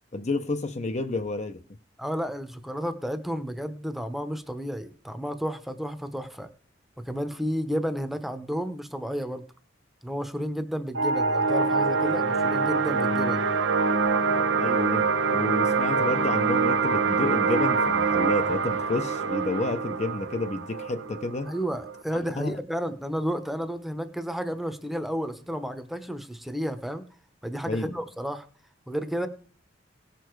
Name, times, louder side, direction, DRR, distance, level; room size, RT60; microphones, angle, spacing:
voice 1, 0.1-1.6 14.6-15.1 15.3-21.5 22.1-22.6 27.7-27.9, left 2 dB, 40° left, 0.7 m, -30 dB
voice 2, 2.0-6.5 7.0-9.4 10.0-13.5 21.5-27.0 27.4-28.4 28.9-29.3, equal, ahead, 0.9 m, -32 dB
sound 1, 10.9-22.0, right 4 dB, 90° right, 0.9 m, -25 dB
17.5 x 6.8 x 4.6 m
head